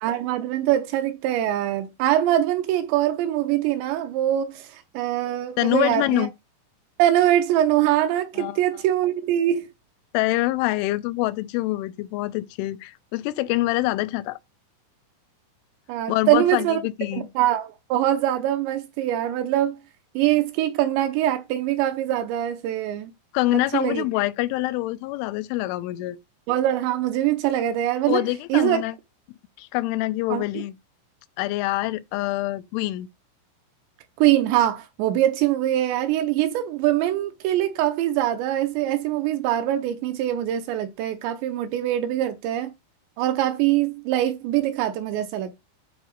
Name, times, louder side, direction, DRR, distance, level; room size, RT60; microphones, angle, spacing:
voice 1, 0.0-6.3 7.0-9.7 15.9-16.8 17.1-19.8 20.2-23.1 23.7-24.0 26.5-28.8 30.3-30.4 34.2-42.7 43.2-45.5, right 12 dB, 80° right, 2.7 m, -23 dB
voice 2, 5.6-6.3 8.4-8.6 10.1-14.4 16.1-17.3 23.3-26.2 28.1-28.9 29.6-30.8 31.4-33.1, left 18 dB, 85° left, 3.1 m, -25 dB
9.5 x 4.0 x 5.2 m
omnidirectional pair, 5.5 m